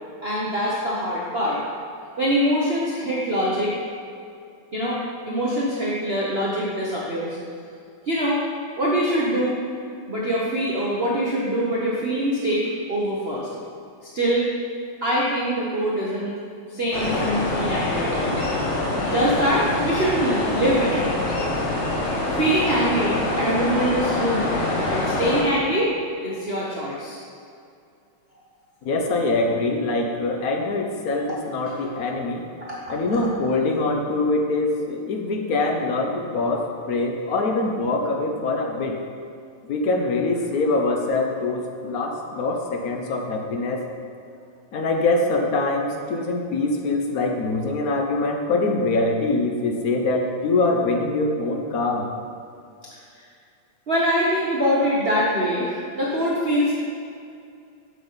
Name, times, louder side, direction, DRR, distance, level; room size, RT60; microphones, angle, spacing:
voice 1, 0.2-1.6 2.2-3.8 4.7-7.4 8.1-8.4 8.8-9.6 10.1-13.5 14.1-14.5 15.0-16.4 16.7-18.4 19.1-21.1 22.3-25.9 26.2-27.2 32.7-32.9 53.2-53.3 53.9-56.7, equal, 45° right, -6 dB, 0.8 m, -23 dB
sound 1, 16.9-25.4, left 2 dB, 40° left, 1.2 m, -25 dB
voice 2, 28.8-32.4 32.9-39.0 39.6-43.9 44.7-52.1, left 2 dB, 65° left, 2 dB, 0.9 m, -24 dB
8.0 x 7.2 x 3.9 m, 2.4 s
omnidirectional pair, 2.4 m